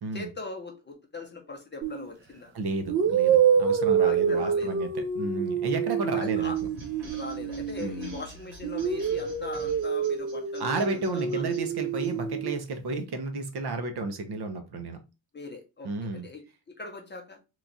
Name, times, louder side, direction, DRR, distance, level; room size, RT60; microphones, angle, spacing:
voice 1, 0.1-2.5 4.0-4.8 6.1-6.6 7.1-11.5 15.3-16.4 16.8-17.4, left 3 dB, 25° left, 0.7 m, -40 dB
sound 1, 1.8-2.1 2.9-8.2 8.6-12.6, right 7 dB, 30° right, 0.4 m, -27 dB
voice 2, 2.5-6.5 7.8-8.2 10.6-15.0 15.8-16.3, right 3 dB, 55° right, 0.7 m, -32 dB
sound 2, 6.5-12.1, right 2 dB, 75° right, 1.3 m, -48 dB
3.0 x 2.3 x 3.9 m
wide cardioid pair, 170°, 46 cm